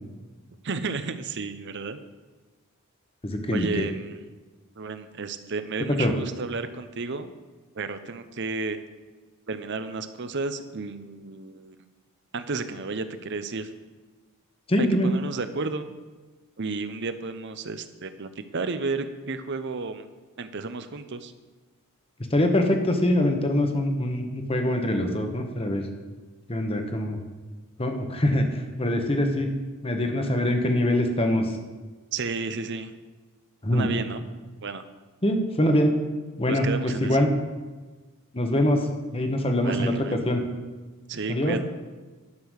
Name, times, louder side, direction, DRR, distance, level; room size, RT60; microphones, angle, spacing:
voice 1, 0.6-2.0 3.5-4.2 4.8-7.3 7.7-8.8 9.5-11.8 12.3-13.7 14.8-16.0 16.6-20.1 20.4-21.3 32.1-32.9 33.7-34.3 34.6-34.8 36.5-37.2 39.6-40.2 41.1-41.6, right 4 dB, 55° right, 10 dB, 0.7 m, -32 dB
voice 2, 3.2-3.9 5.9-6.1 14.7-15.1 22.3-25.9 26.5-27.2 27.8-29.5 29.8-31.5 33.6-33.9 35.2-35.9 36.4-37.3 38.3-38.9 39.1-40.4 41.3-41.6, left 1 dB, 25° left, 4 dB, 1.2 m, -24 dB
11.5 x 6.7 x 6.4 m, 1.3 s
head